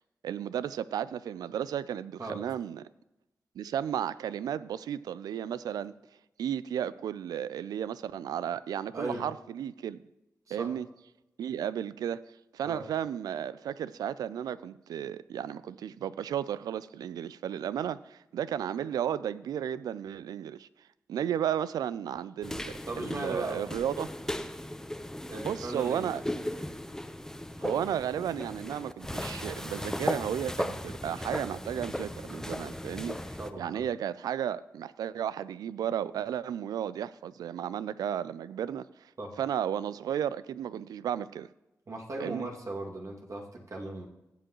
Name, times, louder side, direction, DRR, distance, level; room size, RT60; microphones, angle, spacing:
voice 1, 0.2-2.9 3.6-5.9 6.4-10.0 10.5-10.9 11.4-12.2 12.5-20.7 21.1-24.1 25.4-26.2 27.6-33.2 33.6-38.9 39.4-41.5 42.2-42.5, right 9 dB, 85° right, 0.3 m, -33 dB
voice 2, 8.9-9.2 10.5-10.7 12.6-12.8 22.9-23.6 25.3-26.3 33.4-33.8 39.2-39.3 41.9-44.1, right 2 dB, 55° right, 2.2 m, -37 dB
sound 1, 22.4-33.5, left 1 dB, 10° left, 0.8 m, -37 dB
16.0 x 7.8 x 3.0 m
supercardioid pair, 45°, 6 cm